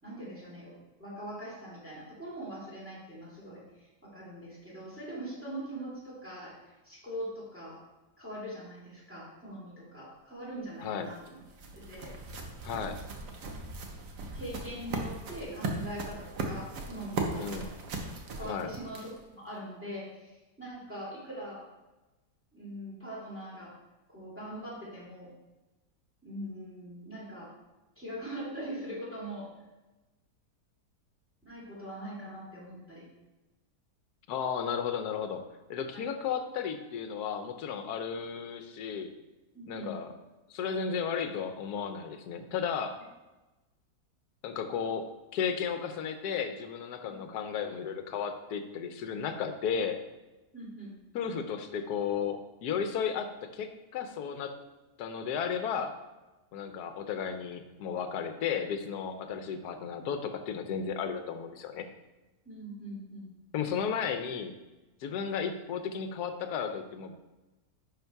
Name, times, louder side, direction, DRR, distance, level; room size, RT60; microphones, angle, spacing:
voice 1, 0.0-6.5 6.8-7.8 8.2-11.4 11.9-12.1 14.3-17.5 18.4-21.6 22.5-23.7 24.1-25.3 26.2-27.5 28.0-29.5 31.4-33.0 35.9-36.0 39.5-40.0 47.1-47.4 50.5-50.9 62.4-63.3, right 1 dB, 5° right, -6 dB, 3.0 m, -42 dB
sound 1, 10.8-19.3, right 3 dB, 85° right, 1.6 m, -38 dB
voice 2, 12.6-13.0 17.3-17.7 18.4-18.7 34.3-35.4 35.7-39.1 39.7-40.1 40.5-43.0 44.4-45.1 45.3-50.0 51.1-54.5 55.0-56.0 56.5-61.9 63.5-64.5 65.0-67.1, left 7 dB, 75° left, 7 dB, 1.3 m, -34 dB
11.0 x 4.3 x 4.6 m, 1.1 s
omnidirectional pair, 1.7 m